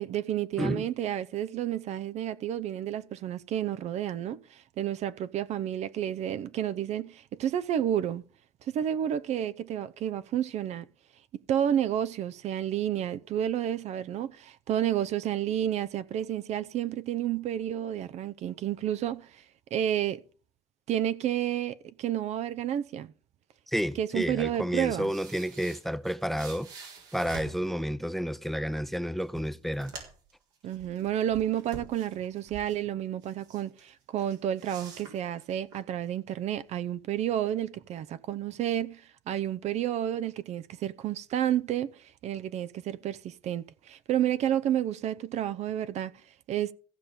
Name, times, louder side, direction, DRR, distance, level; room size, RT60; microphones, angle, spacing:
voice 1, 0.0-8.2 8.7-10.8 11.5-19.4 19.7-20.2 20.9-23.1 24.0-25.1 30.6-46.1 46.5-46.7, right 10 dB, 60° right, 0.7 m, -30 dB
voice 2, 23.7-29.9, equal, ahead, 0.6 m, -31 dB
sound 1, 24.8-27.7 28.8-28.9 29.2-30.3 30.7-32.8 33.2-33.9 34.2-35.8, right 5 dB, 85° right, 4.1 m, -47 dB
14.5 x 5.7 x 6.7 m
supercardioid pair, 70°, 13 cm